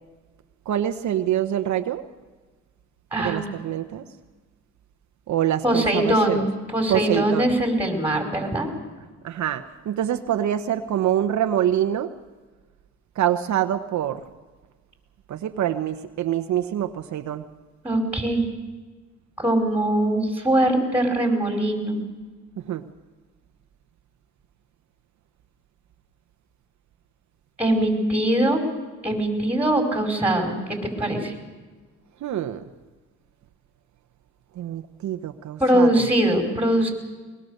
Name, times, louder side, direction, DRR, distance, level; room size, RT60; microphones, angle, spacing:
voice 1, 0.7-2.0 3.2-4.1 5.3-6.4 6.9-7.5 9.2-12.1 13.2-14.2 15.3-17.4 22.6-22.8 32.2-32.6 34.6-35.9, right 11 dB, 70° right, 7 dB, 1.1 m, -25 dB
voice 2, 3.1-3.5 5.6-8.7 17.8-18.5 19.4-22.0 27.6-28.6 29.0-31.3 35.6-36.9, right 1 dB, 5° right, 3 dB, 5.3 m, -22 dB
22.0 x 21.5 x 6.7 m, 1.3 s
cardioid pair, 90°, 30 cm